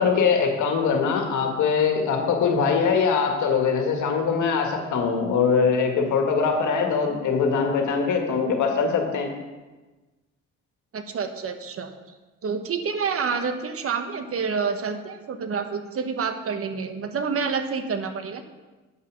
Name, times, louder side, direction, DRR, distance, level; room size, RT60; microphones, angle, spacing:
voice 1, 0.0-9.3, left 5 dB, 75° left, 3 dB, 1.8 m, -22 dB
voice 2, 10.9-11.9 12.4-18.4, right 5 dB, 50° right, 8 dB, 1.1 m, -28 dB
9.2 x 5.7 x 6.2 m, 1.2 s
cardioid pair, 90°, 30 cm